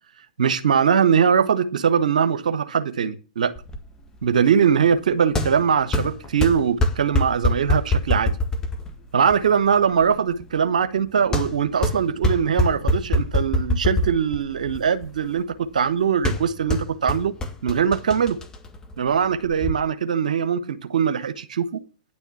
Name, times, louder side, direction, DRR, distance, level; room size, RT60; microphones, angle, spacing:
voice 1, 0.4-3.5 4.2-8.3 9.1-17.3 17.6-18.4 19.0-21.8, right 7 dB, 70° right, 1.1 m, -21 dB
sound 1, 3.6-19.7, left 1 dB, 15° left, 1.8 m, -26 dB
10.0 x 6.9 x 7.2 m
figure-of-eight pair, 110°, 4 cm